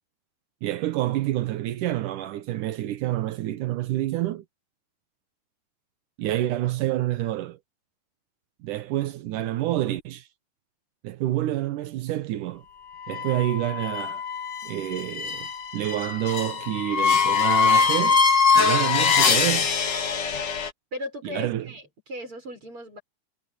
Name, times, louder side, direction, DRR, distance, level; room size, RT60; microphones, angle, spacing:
voice 1, 0.6-4.4 6.2-7.6 8.6-10.3 11.0-12.6 13.1-14.2 14.6-15.5 15.7-18.2 18.6-19.7 21.2-21.7, right 14 dB, 80° right, 2.5 m, -28 dB
sound 1, 13.0-20.7, left 5 dB, 45° left, 1.6 m, -23 dB
voice 2, 20.9-23.0, left 1 dB, 40° right, 7.8 m, -37 dB
omnidirectional pair, 3.7 m